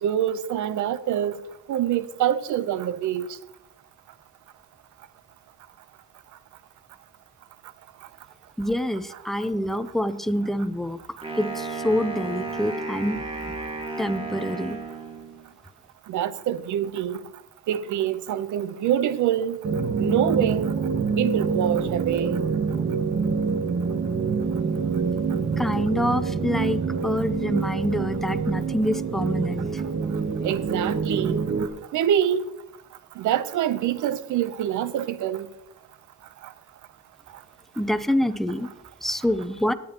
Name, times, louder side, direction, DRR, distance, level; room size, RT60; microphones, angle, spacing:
voice 1, 0.0-1.4 1.7-3.4 16.1-17.2 17.7-19.6 20.0-20.7 21.2-22.4 30.4-31.4 31.9-32.4 33.2-35.5, right 10 dB, 75° right, 0.8 m, -25 dB
voice 2, 8.6-11.0 11.4-13.6 14.0-14.8 25.6-29.8 37.8-38.7 39.0-39.7, equal, ahead, 0.6 m, -26 dB
Wind instrument woodwind instrument, 11.2-15.5, right 3 dB, 20° right, 2.4 m, -33 dB
sound 1, 19.6-31.7, right 5 dB, 40° right, 1.2 m, -26 dB
20.0 x 8.7 x 3.0 m
cardioid pair, 90°, 30 cm